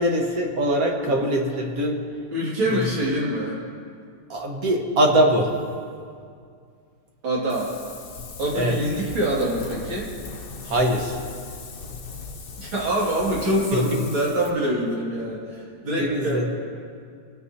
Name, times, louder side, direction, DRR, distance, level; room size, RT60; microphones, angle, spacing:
voice 1, 0.0-2.0 2.7-2.9 4.3-5.5 8.5-8.8 10.7-11.2 13.7-14.0 16.0-16.5, right 1 dB, 50° right, 1 dB, 1.7 m, -22 dB
voice 2, 2.3-3.6 7.2-7.7 8.4-10.1 12.6-16.5, right 1 dB, 90° right, -4 dB, 3.1 m, -25 dB
Wind, 7.5-14.5, left 4 dB, 55° left, 1.2 m, -38 dB
25.0 x 9.4 x 2.8 m, 2.2 s
omnidirectional pair, 2.1 m